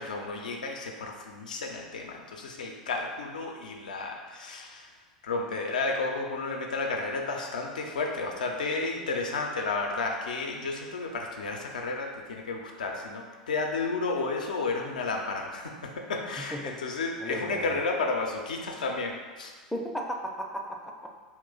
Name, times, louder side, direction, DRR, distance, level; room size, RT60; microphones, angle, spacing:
voice 1, 0.0-4.9 5.2-19.5, left 3 dB, 80° left, 2 dB, 0.4 m, -32 dB
voice 2, 17.2-17.8 19.7-21.2, equal, ahead, 1 dB, 0.4 m, -35 dB
2.4 x 2.0 x 3.8 m, 1.4 s
hypercardioid pair, 90°, 4 cm